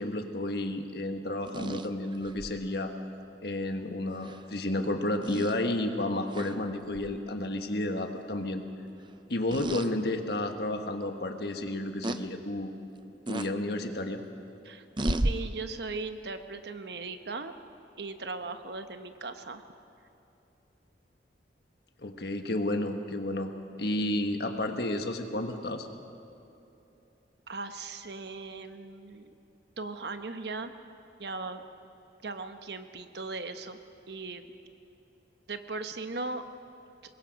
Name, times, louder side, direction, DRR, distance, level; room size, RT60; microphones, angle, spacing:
voice 1, 0.0-2.9 3.4-8.6 9.3-12.7 13.3-14.2 22.0-23.5 23.8-25.9, left 1 dB, 65° left, 5 dB, 1.5 m, -31 dB
sound 1, 1.5-2.6 4.2-4.4 5.2-5.5 6.3-6.6 6.9-7.1 9.5-9.9 10.5-10.6 12.0-12.2 13.3-13.5 15.0-15.3, right 1 dB, 25° right, 0.6 m, -32 dB
voice 2, 14.6-17.5 18.0-19.6 27.5-29.3 29.8-30.7 31.2-31.6 32.2-33.8 34.1-34.4 35.5-36.4, right 3 dB, 65° right, 8 dB, 1.1 m, -38 dB
24.5 x 21.0 x 5.3 m, 2.8 s
head